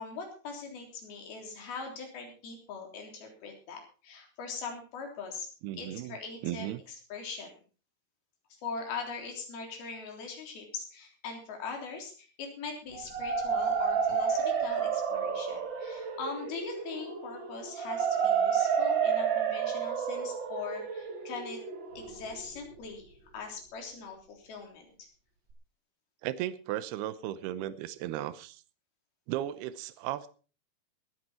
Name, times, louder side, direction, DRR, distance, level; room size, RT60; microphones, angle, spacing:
voice 1, 0.0-5.5 5.8-6.7 7.1-7.5 8.6-21.6 21.9-25.1, left 5 dB, 65° left, 2 dB, 5.3 m, -41 dB
voice 2, 5.6-6.2 6.4-6.8 14.1-14.2 26.2-28.6 29.3-30.3, right 13 dB, 75° right, 14 dB, 2.7 m, -35 dB
sound 1, 12.9-22.8, right 7 dB, 50° right, 1.4 m, -30 dB
20.5 x 9.3 x 4.4 m, 0.37 s
omnidirectional pair, 4.9 m